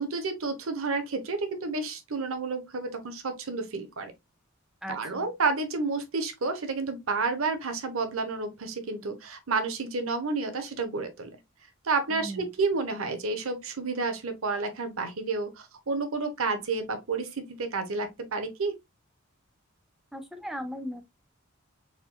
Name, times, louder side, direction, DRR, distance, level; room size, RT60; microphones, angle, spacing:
voice 1, 0.0-4.1 4.9-11.3 11.8-18.7, right 4 dB, 75° right, 0.9 m, -30 dB
voice 2, 4.8-5.3 12.1-12.5 20.1-21.0, equal, ahead, 0.4 m, -37 dB
4.4 x 3.7 x 2.2 m
head